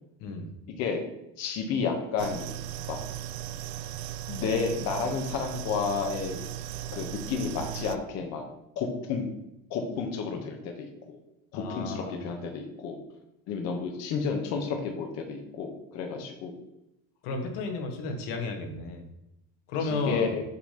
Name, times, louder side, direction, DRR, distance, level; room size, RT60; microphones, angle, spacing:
voice 1, 0.7-1.0 1.4-2.6 2.9-3.0 4.3-6.4 6.9-8.4 8.8-9.3 9.7-11.2 11.5-13.0 13.5-16.5 19.8-20.4, left 5 dB, 45° left, 3 dB, 0.8 m, -31 dB
sound 1, 2.2-8.0, right 11 dB, 85° right, 0.5 m, -37 dB
voice 2, 11.5-12.2 17.2-19.0 19.7-20.3, left 3 dB, 85° left, 4 dB, 1.2 m, -33 dB
6.8 x 2.8 x 4.9 m, 0.88 s
cardioid pair, 175°, 36 cm